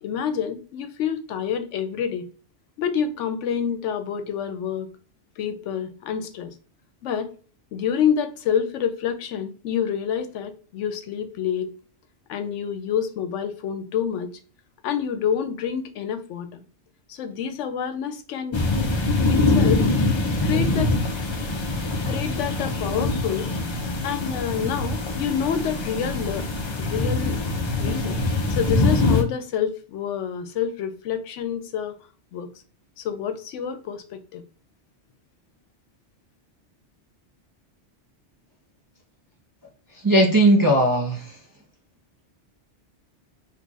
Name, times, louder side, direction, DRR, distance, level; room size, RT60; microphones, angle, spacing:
voice 1, 0.0-2.3 2.8-4.9 5.4-6.5 7.0-7.3 7.7-11.7 12.3-14.3 14.8-16.6 17.1-18.6 19.3-19.9 20.4-20.9 22.1-23.5 24.0-26.5 26.8-27.4 27.8-28.2 28.5-32.0 32.3-32.5 33.0-34.4, left 8 dB, 85° left, 0.9 m, -27 dB
sound 1, 18.5-29.2, left 2 dB, 40° left, 0.4 m, -24 dB
voice 2, 39.9-41.4, right 1 dB, 30° right, 0.4 m, -18 dB
2.8 x 2.4 x 3.8 m
omnidirectional pair, 1.2 m